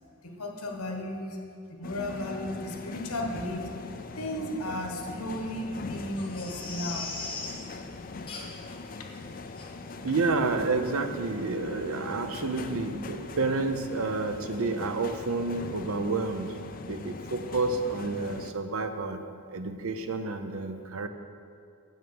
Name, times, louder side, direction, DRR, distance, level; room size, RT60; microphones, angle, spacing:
voice 1, 0.2-1.4 1.7-3.7 4.1-7.1 9.0-9.1, left 1 dB, 85° left, 2 dB, 1.3 m, -35 dB
sound 1, 1.8-18.5, left 3 dB, 40° left, 0.4 m, -41 dB
Crying sobbing, 6.2-7.7 8.3-8.7 9.1-9.2 9.6-9.7 10.2-10.3 10.6-10.7, left 4 dB, 25° left, 1.0 m, -39 dB
voice 2, 10.0-16.5 16.8-19.2 19.5-21.1, right 3 dB, 70° right, 8 dB, 0.6 m, -30 dB
7.6 x 6.3 x 7.0 m, 2.5 s
head